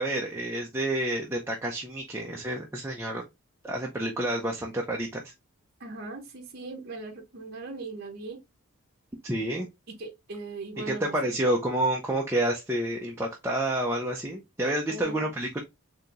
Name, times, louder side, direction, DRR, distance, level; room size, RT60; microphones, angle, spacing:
voice 1, 0.0-3.2 3.6-5.3 9.2-9.7 10.9-15.6, right 1 dB, 10° right, 0.5 m, -29 dB
voice 2, 5.8-8.4 9.5-9.6 9.9-11.4 14.9-15.4, right 2 dB, 45° right, 0.7 m, -40 dB
4.3 x 2.8 x 2.5 m
head